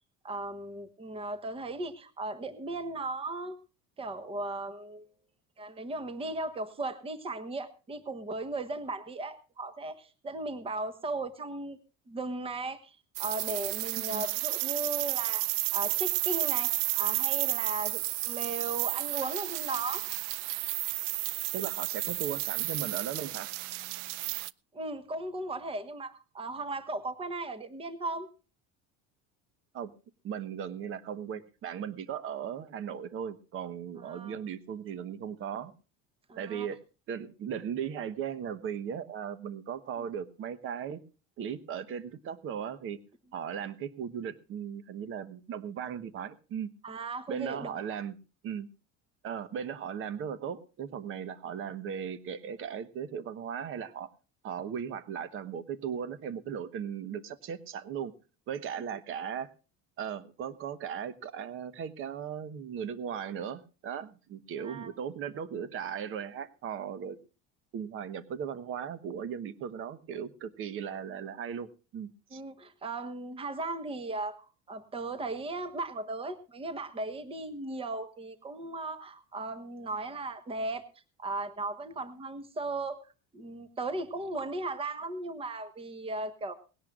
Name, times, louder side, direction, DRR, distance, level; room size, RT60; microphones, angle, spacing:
voice 1, 0.2-3.6 4.0-5.1 5.6-11.8 12.1-20.0 24.7-28.3 34.0-34.4 36.3-36.7 46.8-47.7 64.6-64.9 72.3-80.8 81.2-86.5, right 2 dB, 20° right, 11 dB, 1.3 m, -37 dB
sound 1, 13.2-24.5, right 18 dB, 85° right, 0.6 m, -32 dB
voice 2, 13.9-14.2 21.5-23.5 29.7-29.9 30.2-35.7 36.4-36.8 37.1-41.0 41.4-43.0 43.3-46.7 47.3-48.1 48.4-48.7 49.2-54.1 54.4-58.1 58.5-59.5 60.0-67.2 67.7-72.4, right 8 dB, 40° right, 14 dB, 1.2 m, -37 dB
19.5 x 17.0 x 2.4 m, 0.33 s
cardioid pair, 155°, 31 cm